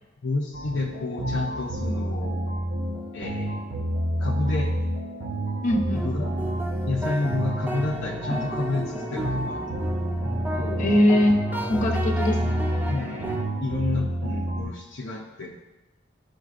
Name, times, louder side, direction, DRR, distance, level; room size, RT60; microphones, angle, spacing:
voice 1, 0.2-2.5 3.1-3.6 4.2-4.7 5.9-6.3 6.9-9.6 10.6-11.2 12.9-15.6, left 3 dB, 65° left, -2 dB, 0.7 m, -30 dB
sound 1, 0.5-14.6, equal, 75° right, 1.5 m, -29 dB
voice 2, 5.6-6.1 10.8-11.4 11.7-12.6, left 1 dB, 40° left, 2 dB, 1.0 m, -21 dB
sound 2, 5.9-13.4, right 1 dB, 10° right, 0.6 m, -33 dB
10.5 x 5.2 x 2.5 m, 1.0 s
head